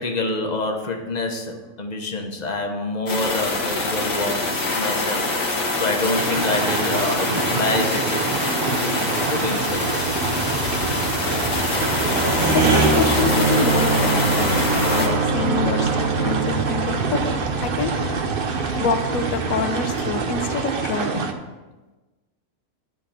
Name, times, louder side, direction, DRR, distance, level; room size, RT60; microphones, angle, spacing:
voice 1, 0.0-4.4 4.7-5.4 5.7-9.0 9.3-9.9, left 2 dB, 30° left, 2 dB, 1.0 m, -27 dB
sound 1, 3.1-15.1, left 2 dB, 90° left, 1.9 m, -25 dB
sound 2, 6.1-21.3, right 4 dB, 50° right, 0.7 m, -26 dB
sound 3, 9.4-21.0, right 3 dB, 75° right, 1.6 m, -25 dB
voice 2, 12.5-14.6 14.9-18.0 18.8-21.3, left 5 dB, 70° left, 7 dB, 1.2 m, -26 dB
10.0 x 3.8 x 7.2 m, 1.2 s
omnidirectional pair, 1.6 m